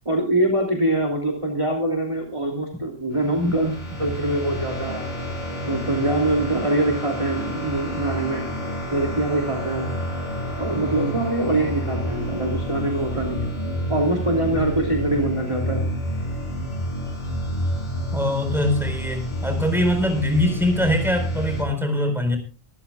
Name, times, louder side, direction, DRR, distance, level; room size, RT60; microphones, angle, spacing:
voice 1, 0.0-5.1 5.6-8.4 8.9-9.9 10.6-13.5 13.9-15.8, right 1 dB, 25° right, 0 dB, 2.9 m, -24 dB
sound 1, 3.1-21.6, equal, 45° left, 6.4 m, -29 dB
voice 2, 18.1-22.4, left 1 dB, ahead, 5 dB, 4.3 m, -22 dB
24.0 x 14.5 x 2.3 m, 0.32 s
omnidirectional pair, 1.1 m